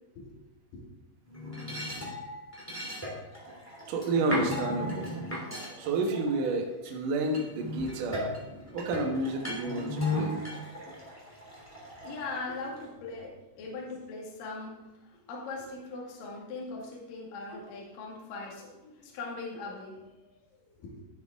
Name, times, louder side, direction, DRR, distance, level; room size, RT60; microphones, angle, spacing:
sound 1, 1.2-6.9 7.3-12.8, left 1 dB, 10° left, 0.9 m, -36 dB
voice 1, 1.8-2.2 3.9-8.4 8.7-10.3, right 2 dB, 75° right, 0 dB, 1.9 m, -31 dB
voice 2, 12.0-20.4 20.7-21.0, left 3 dB, 55° left, -3 dB, 3.1 m, -40 dB
12.5 x 7.9 x 3.6 m, 1.0 s
omnidirectional pair, 5.9 m